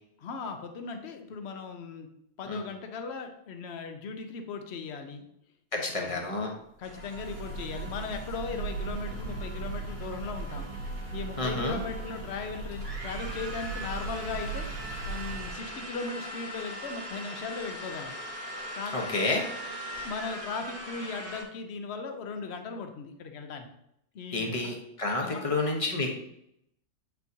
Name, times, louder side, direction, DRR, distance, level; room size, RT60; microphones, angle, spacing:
voice 1, 0.2-2.1 2.4-5.2 5.8-6.3 6.8-18.1 18.8-19.4 20.0-23.7 24.1-24.7 25.2-25.4, left 4 dB, 55° left, 6 dB, 0.8 m, -38 dB
voice 2, 5.7-6.5 11.4-11.8 18.9-19.4 24.3-26.1, left 2 dB, 25° left, 0 dB, 0.8 m, -29 dB
sound 1, 6.8-21.4, equal, 25° right, 1.2 m, -41 dB
sound 2, 6.8-15.9, right 3 dB, 75° right, 1.6 m, -38 dB
7.6 x 4.4 x 2.8 m, 0.77 s
omnidirectional pair, 1.6 m